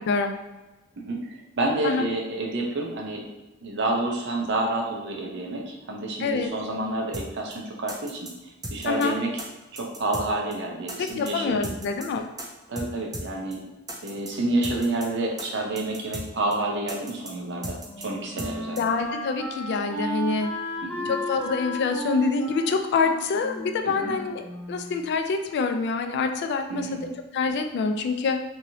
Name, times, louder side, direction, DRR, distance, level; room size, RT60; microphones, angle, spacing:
voice 1, 0.1-0.4 1.8-2.0 6.2-6.5 8.9-9.2 11.0-12.3 18.8-20.5 21.1-28.4, left 4 dB, 55° left, 6 dB, 0.3 m, -26 dB
voice 2, 1.0-3.3 3.6-9.3 9.7-11.7 12.7-13.7 14.0-18.8 20.8-21.1 23.8-24.2 26.7-27.1, right 2 dB, 60° right, 0 dB, 0.6 m, -29 dB
sound 1, 7.1-7.3 7.5-7.6 7.9-8.3 8.6-9.1 9.4-9.5 9.8-10.3 10.5-10.6 10.9-11.3 11.6-12.1 12.4-12.5 12.8-12.9 13.1-13.3 13.5-13.6 13.9-14.3 14.6-15.1 15.4-15.5 15.8-16.3 16.5-16.6 16.9-17.3 17.6-18.1 18.4-18.5 18.8-18.9, right 1 dB, 20° right, 0.4 m, -36 dB
Wind instrument woodwind instrument, 17.3-25.1, equal, 5° left, 1.4 m, -35 dB
2.9 x 2.7 x 2.7 m, 1.1 s
head